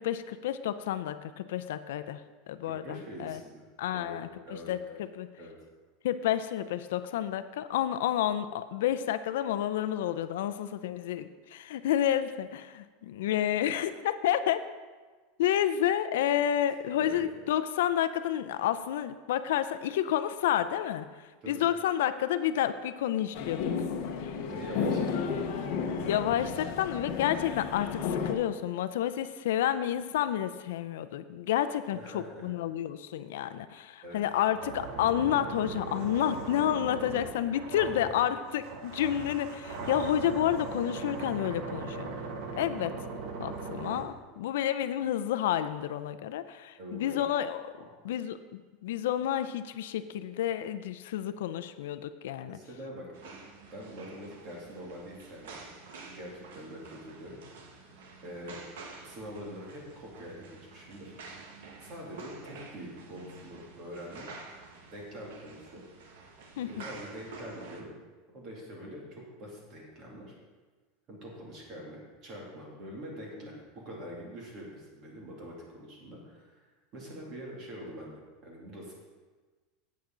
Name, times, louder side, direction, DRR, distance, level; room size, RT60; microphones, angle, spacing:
voice 1, 0.0-2.2 2.5-3.4 3.8-4.3 4.7-5.3 6.0-14.6 15.4-21.1 21.5-23.6 26.1-42.1 42.6-42.9 43.4-47.6 48.0-52.6 66.6-66.8, left 11 dB, 80° left, 12 dB, 0.5 m, -30 dB
voice 2, 2.6-3.6 3.9-4.7 5.4-5.5 16.9-17.2 21.4-21.6 24.4-25.7 31.9-32.5 34.0-34.2 37.9-38.0 38.3-38.4 46.8-47.1 47.8-47.9 52.4-53.4 53.7-55.6 56.1-57.4 57.8-57.9 58.2-58.6 59.0-61.5 61.8-64.3 64.9-65.8 66.6-68.0 68.3-70.3 71.1-76.6 76.9-78.9, equal, 30° right, -3 dB, 2.5 m, -44 dB
sound 1, 23.3-28.3, left 6 dB, 50° left, 1.0 m, -32 dB
sound 2, 34.4-44.0, right 4 dB, 45° right, 1.1 m, -39 dB
sound 3, 53.1-67.8, right 4 dB, 90° right, 1.5 m, -49 dB
11.5 x 8.6 x 3.9 m, 1.3 s
supercardioid pair, 180°, 0 cm